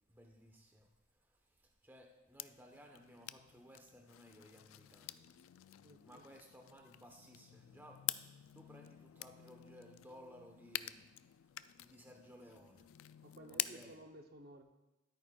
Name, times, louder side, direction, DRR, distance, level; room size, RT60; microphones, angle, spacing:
voice 1, 0.1-0.9 1.6-5.2 6.0-8.0 8.5-11.1 11.8-12.9 13.7-14.0, equal, 10° right, 2 dB, 0.9 m, -58 dB
sound 1, 2.4-13.9, left 14 dB, 85° left, 0.3 m, -47 dB
voice 2, 5.8-6.3 13.2-14.6, right 1 dB, 50° right, 4 dB, 0.7 m, -55 dB
12.5 x 9.0 x 2.3 m, 1.0 s
head